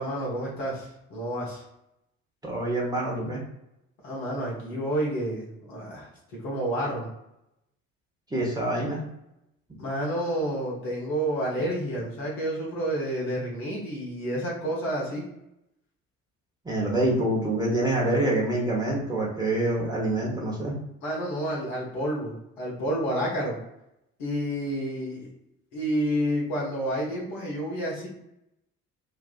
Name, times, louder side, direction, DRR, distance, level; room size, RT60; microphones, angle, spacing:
voice 1, 0.0-1.6 4.0-6.1 6.4-7.1 9.8-15.2 21.0-23.6 24.2-25.3 25.7-28.1, right 1 dB, 60° left, -4 dB, 1.1 m, -29 dB
voice 2, 2.4-3.4 8.3-9.0 16.6-20.8, right 1 dB, 10° right, -4 dB, 1.0 m, -26 dB
3.5 x 2.3 x 2.4 m, 0.85 s
figure-of-eight pair, 50°, 40 cm